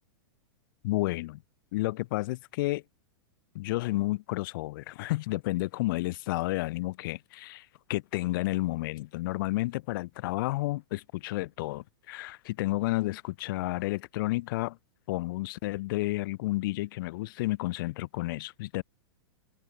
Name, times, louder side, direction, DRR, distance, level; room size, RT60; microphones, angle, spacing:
voice 1, 0.8-1.4 1.7-2.8 3.5-14.8 15.1-18.8, left 19 dB, 55° left, 0.5 m, -31 dB
hypercardioid pair, 140°, 13 cm